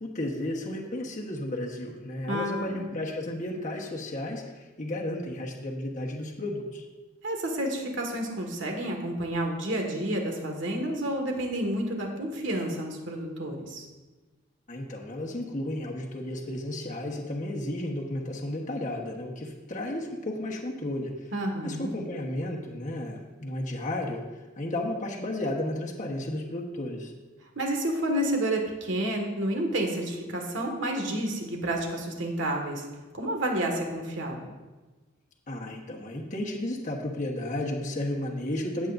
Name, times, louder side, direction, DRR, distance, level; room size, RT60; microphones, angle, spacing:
voice 1, 0.0-6.8 14.7-21.1 21.6-24.2 24.6-27.1 35.5-38.9, left 1 dB, 40° left, -1 dB, 1.2 m, -33 dB
voice 2, 2.2-2.8 7.2-13.8 21.3-21.9 27.6-32.9 33.2-34.5, right 1 dB, 65° right, 2 dB, 1.9 m, -30 dB
15.5 x 8.6 x 2.6 m, 1.2 s
head